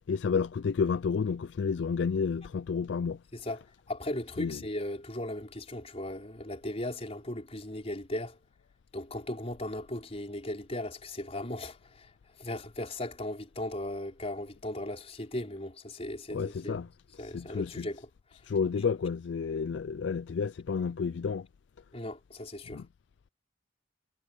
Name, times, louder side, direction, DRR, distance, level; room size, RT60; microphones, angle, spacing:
voice 1, 0.1-3.2 4.4-4.6 16.3-16.9 17.2-17.9 18.4-21.5 22.7-22.9, left 5 dB, 65° left, 0.4 m, -30 dB
voice 2, 3.3-8.4 8.9-12.1 12.4-16.8 17.2-18.1 21.9-22.8, left 1 dB, 35° left, 4.7 m, -37 dB
head